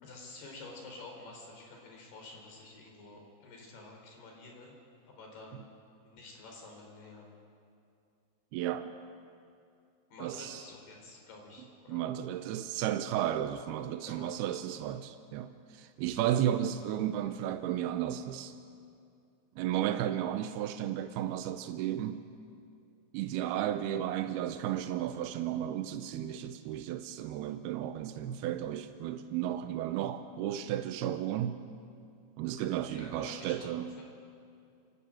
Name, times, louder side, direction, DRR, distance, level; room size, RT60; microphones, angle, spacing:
voice 1, 0.0-4.7 5.1-5.6 6.0-7.3 10.1-12.1 14.1-14.4 24.8-24.9 32.9-33.7 34.0-34.1, left 3 dB, 60° left, 0 dB, 6.0 m, -49 dB
voice 2, 8.5-8.9 10.2-10.6 11.9-18.5 19.6-22.2 23.1-31.6 32.4-33.9, right 11 dB, 80° right, 9 dB, 2.3 m, -33 dB
29.0 x 12.5 x 9.0 m, 2.4 s
omnidirectional pair, 5.3 m